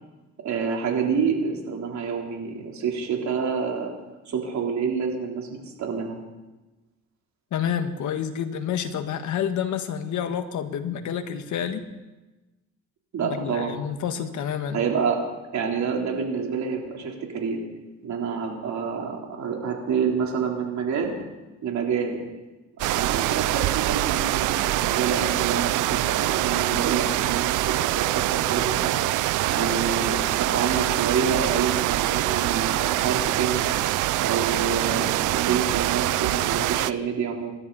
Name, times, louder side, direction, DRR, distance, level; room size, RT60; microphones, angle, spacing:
voice 1, 0.4-3.9 4.3-6.2 13.1-13.8 14.7-15.2 15.5-17.6 18.0-21.2 21.6-22.3 22.9-29.0 29.5-33.7 34.2-37.5, right 6 dB, 65° right, 0 dB, 3.9 m, -28 dB
voice 2, 7.5-11.8 13.2-14.8, left 8 dB, 75° left, 8 dB, 1.7 m, -29 dB
sound 1, 22.8-36.9, right 16 dB, 85° right, 0.5 m, -24 dB
27.0 x 12.5 x 4.2 m, 1.1 s
cardioid pair, 90°, 30 cm